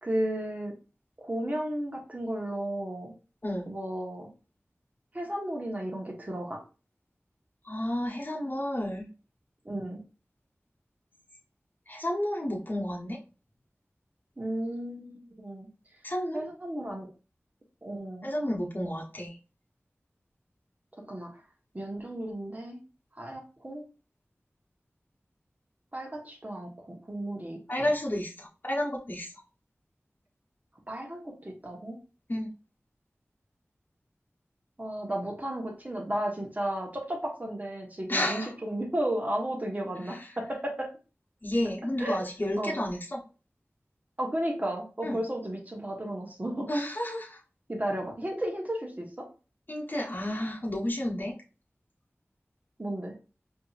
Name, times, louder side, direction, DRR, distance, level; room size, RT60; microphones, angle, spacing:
voice 1, 0.0-0.7 1.2-3.1 3.7-4.3 5.1-6.6 9.6-10.0 14.4-15.7 16.3-17.1 17.8-18.3 21.0-21.3 21.7-22.8 23.1-23.8 25.9-27.9 30.9-32.0 34.8-40.9 42.0-42.3 42.6-42.8 44.2-46.7 47.7-49.3 52.8-53.1, right 1 dB, 35° right, 0 dB, 1.3 m, -34 dB
voice 2, 7.6-9.1 11.9-13.2 16.0-16.4 18.2-19.4 27.7-29.3 32.3-32.5 38.1-38.5 40.1-40.3 41.4-43.2 45.0-45.2 46.7-47.4 49.7-51.3, left 1 dB, 40° left, -3 dB, 1.1 m, -31 dB
5.0 x 2.9 x 2.5 m, 0.34 s
wide cardioid pair, 50°, 5 cm